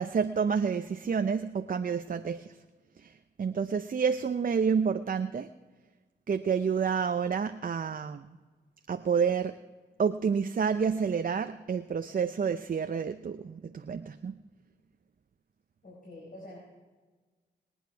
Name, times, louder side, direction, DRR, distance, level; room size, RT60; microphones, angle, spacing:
voice 1, 0.0-2.6 3.0-5.5 6.3-8.4 8.9-9.6 10.0-14.3, right 6 dB, 50° right, 9 dB, 0.6 m, -29 dB
voice 2, 15.8-16.6, left 1 dB, 50° left, -3 dB, 5.0 m, -46 dB
21.5 x 9.0 x 4.6 m, 1.3 s
cardioid pair, 55°, 19 cm